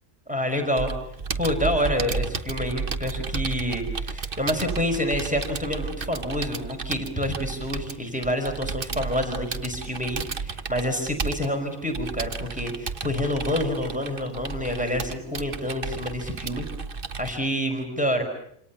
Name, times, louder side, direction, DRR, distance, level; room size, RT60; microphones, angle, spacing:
voice 1, 0.3-0.9 1.4-16.6 17.2-18.2, left 1 dB, 5° right, 5 dB, 5.1 m, -28 dB
Computer keyboard, 0.8-17.3, right 5 dB, 40° right, 1.3 m, -33 dB
28.0 x 27.5 x 7.1 m, 0.71 s
omnidirectional pair, 1.5 m